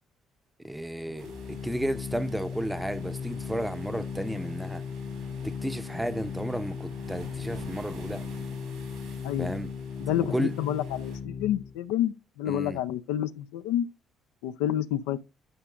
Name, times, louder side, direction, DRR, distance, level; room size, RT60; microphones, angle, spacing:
voice 1, 0.6-4.8 5.4-8.2 9.4-9.7 10.3-10.5 12.5-12.8, right 1 dB, 10° right, 0.6 m, -33 dB
Organ, 1.1-11.8, left 6 dB, 45° left, 0.9 m, -37 dB
sound 1, 1.2-11.2, right 3 dB, 85° right, 3.1 m, -50 dB
voice 2, 9.2-9.5 10.0-13.9 14.4-15.2, left 11 dB, 85° left, 0.4 m, -29 dB
11.0 x 5.0 x 2.4 m
supercardioid pair, 65°, 0 cm